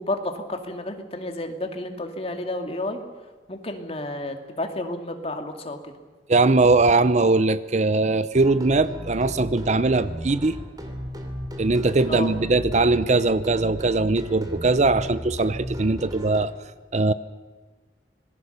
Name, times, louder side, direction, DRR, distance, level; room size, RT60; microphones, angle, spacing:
voice 1, 0.0-3.0 3.5-5.8 12.1-12.3, left 1 dB, 35° left, 5 dB, 2.3 m, -31 dB
voice 2, 6.3-10.6 11.6-16.5 16.9-17.1, right 3 dB, 40° right, 15 dB, 0.6 m, -20 dB
sound 1, 8.3-16.5, equal, 20° right, 2.8 m, -35 dB
26.5 x 20.5 x 6.8 m, 1.3 s
head